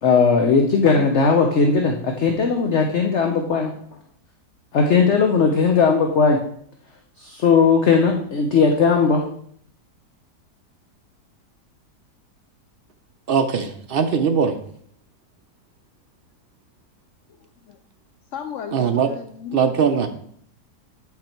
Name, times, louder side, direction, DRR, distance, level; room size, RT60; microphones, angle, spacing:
voice 1, 0.0-3.7 4.7-6.4 7.2-9.3, left 5 dB, 50° left, 3 dB, 1.0 m, -18 dB
voice 2, 13.3-14.5 18.7-19.1 19.5-20.1, right 6 dB, 85° right, 6 dB, 0.5 m, -20 dB
voice 3, 18.3-20.1, left 8 dB, 70° left, 7 dB, 0.7 m, -35 dB
8.6 x 5.9 x 4.4 m, 0.64 s
omnidirectional pair, 1.8 m